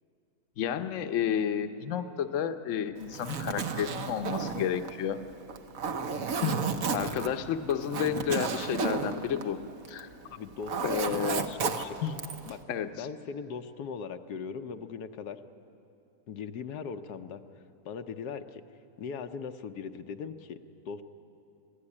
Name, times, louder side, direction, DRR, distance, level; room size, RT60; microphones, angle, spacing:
voice 1, 0.6-5.2 6.4-6.7 6.9-9.6 9.9-10.1 10.8-11.4 12.0-12.2 12.7-12.9, left 8 dB, 55° left, 8 dB, 1.1 m, -31 dB
Zipper (clothing), 3.0-10.1 10.4-12.6, right 5 dB, 60° right, 1.4 m, -33 dB
voice 2, 10.2-12.0 12.5-12.6 12.9-15.4 16.3-17.4 17.8-18.6 19.0-20.6 20.9-21.0, left 6 dB, 80° left, 7 dB, 1.4 m, -39 dB
25.0 x 16.0 x 9.8 m, 2.7 s
omnidirectional pair, 1.7 m